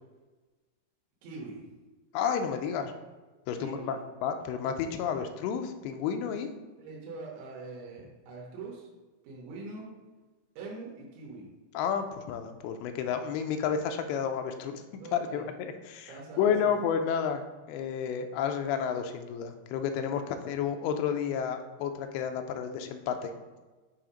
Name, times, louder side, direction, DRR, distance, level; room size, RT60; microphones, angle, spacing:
voice 1, 1.2-1.6 3.6-3.9 5.9-6.0 6.8-8.9 9.2-9.9 10.6-11.5 15.0-15.5 16.1-16.7, right 3 dB, 85° right, -2 dB, 3.1 m, -43 dB
voice 2, 2.1-2.9 3.5-6.5 11.7-23.3, left 7 dB, 85° left, 6 dB, 2.5 m, -31 dB
7.0 x 2.8 x 4.9 m, 1.3 s
omnidirectional pair, 4.5 m